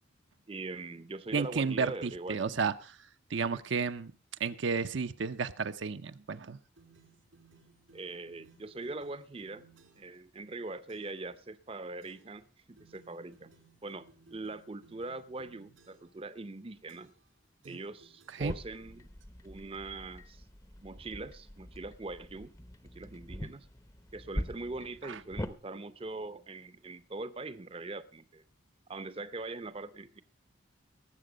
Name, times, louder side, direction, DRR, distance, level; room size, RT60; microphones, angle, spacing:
voice 1, 0.5-2.6 3.5-3.6 7.9-9.7 10.0-13.5 13.8-17.1 17.6-19.1 19.4-20.4 20.8-22.5 22.9-23.7 24.1-28.4 28.9-30.2, right 2 dB, 30° right, 0.6 m, -42 dB
voice 2, 1.3-3.0 3.3-4.1 4.4-6.6 17.7-17.8 18.3-18.5 25.0-25.2, right 5 dB, 70° right, 0.6 m, -32 dB
sound 1, 6.8-10.2 10.9-11.3 12.0-12.4 12.8-16.2 16.9-17.3 17.6-19.0, right 4 dB, 90° right, 2.9 m, -62 dB
sound 2, 18.4-25.5, equal, 15° left, 0.7 m, -43 dB
19.0 x 7.6 x 5.0 m
head